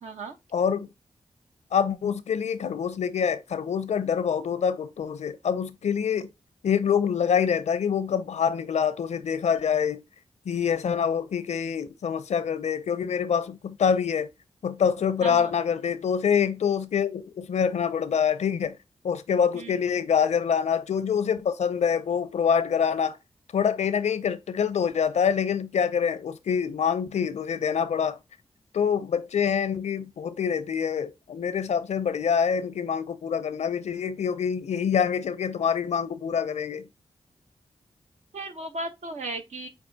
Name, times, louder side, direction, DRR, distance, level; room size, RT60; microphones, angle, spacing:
voice 1, 0.0-0.4 15.2-15.5 19.5-19.8 38.3-39.7, right 2 dB, 80° right, 1.0 m, -36 dB
voice 2, 0.5-0.9 1.7-6.3 6.6-10.0 10.5-14.3 14.6-18.7 19.0-23.2 23.5-28.2 28.7-36.9, left 7 dB, 75° left, 0.5 m, -25 dB
6.6 x 2.4 x 2.7 m
cardioid pair, 45°, 12 cm